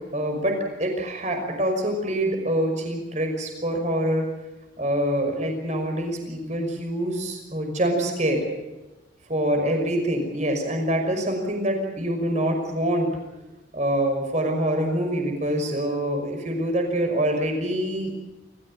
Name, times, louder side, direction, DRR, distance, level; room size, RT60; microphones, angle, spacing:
voice 1, 0.0-4.3 4.8-8.4 9.3-13.1 13.7-18.2, right 1 dB, 40° right, 4 dB, 5.7 m, -25 dB
28.5 x 15.5 x 9.0 m, 1.1 s
head